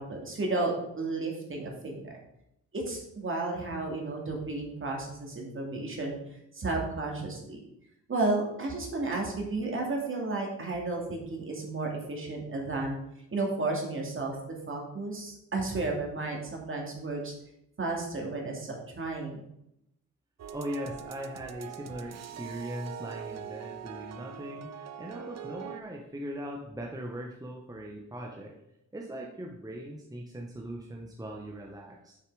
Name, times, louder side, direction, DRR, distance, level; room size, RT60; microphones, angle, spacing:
voice 1, 0.0-2.1 2.7-6.2 6.5-7.6 8.1-13.0 13.3-14.4 14.7-17.3 17.8-19.5, right 2 dB, 40° right, 0 dB, 2.3 m, -32 dB
sound 1, 20.4-25.8, right 8 dB, 55° right, 0.6 m, -42 dB
voice 2, 20.5-28.5 28.9-32.2, equal, 10° right, -1 dB, 1.0 m, -40 dB
6.9 x 5.6 x 4.7 m, 0.81 s
cardioid pair, 90°, 32 cm